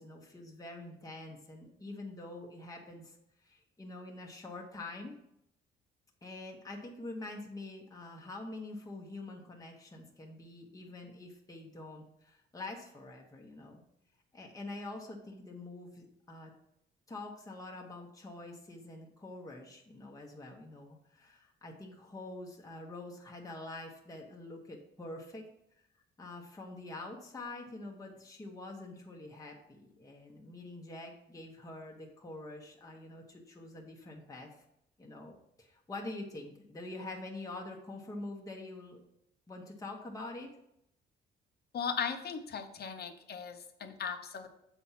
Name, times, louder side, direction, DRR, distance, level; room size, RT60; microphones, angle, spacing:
voice 1, 0.0-5.2 6.2-13.8 14.3-16.5 17.1-25.5 25.9-34.6 35.0-39.0 39.5-40.5, left 2 dB, 15° left, -1 dB, 1.2 m, -46 dB
voice 2, 41.7-44.5, left 6 dB, 55° left, 7 dB, 0.9 m, -37 dB
7.0 x 4.3 x 5.7 m, 0.79 s
cardioid pair, 90°, 20 cm